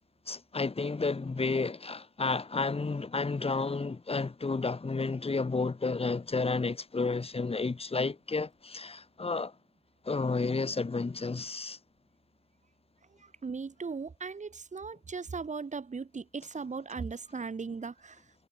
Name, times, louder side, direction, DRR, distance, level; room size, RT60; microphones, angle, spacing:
voice 1, 0.3-9.5 10.0-11.8, left 3 dB, 30° left, 7.3 m, -31 dB
voice 2, 13.2-18.2, right 5 dB, 40° right, 4.6 m, -38 dB
cardioid pair, 80°, 19 cm